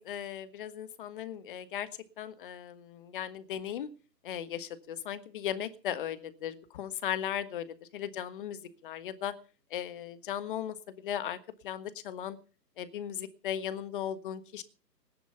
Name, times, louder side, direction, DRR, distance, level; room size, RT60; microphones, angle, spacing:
voice 1, 0.0-1.9 2.2-3.9 4.2-7.6 7.9-8.6 8.8-9.3 9.7-11.4 11.6-12.4 12.8-14.6, left 10 dB, 30° left, 12 dB, 1.5 m, -37 dB
18.5 x 10.5 x 5.7 m, 0.39 s
hypercardioid pair, 150°, 49 cm